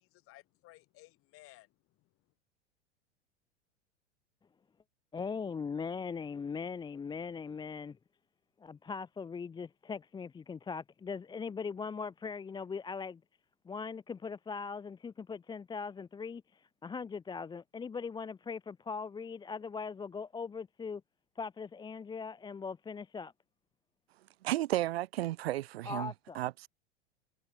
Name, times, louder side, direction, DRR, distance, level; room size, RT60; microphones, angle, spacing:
voice 1, 0.0-2.1, left 18 dB, 40° left, 2.8 m, -58 dB
voice 2, 5.1-8.0 8.6-13.2 13.6-21.0 21.4-23.3 25.8-26.4, left 5 dB, 15° left, 0.8 m, -40 dB
voice 3, 24.4-26.7, right 15 dB, 65° right, 0.6 m, -33 dB
figure-of-eight pair, 95°, 34 cm